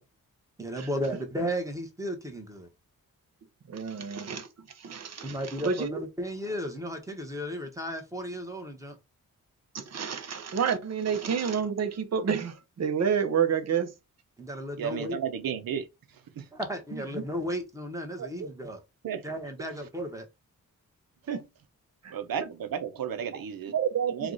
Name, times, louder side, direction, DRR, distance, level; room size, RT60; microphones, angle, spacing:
voice 1, 0.6-2.7 5.2-8.9 14.4-15.2 16.5-18.8 19.2-20.3, equal, 10° right, 1.1 m, -34 dB
voice 2, 3.7-4.5 4.8-5.4 5.6-6.0 9.7-13.9 16.9-17.2 18.2-18.5 21.3-21.4 22.0-22.1 22.4-22.5 23.7-24.3, right 7 dB, 50° right, 0.8 m, -29 dB
voice 3, 14.8-15.9 16.4-16.5 19.0-19.2 22.1-23.7 24.1-24.3, right 8 dB, 80° right, 0.8 m, -33 dB
4.6 x 2.4 x 3.9 m
wide cardioid pair, 130°, 34 cm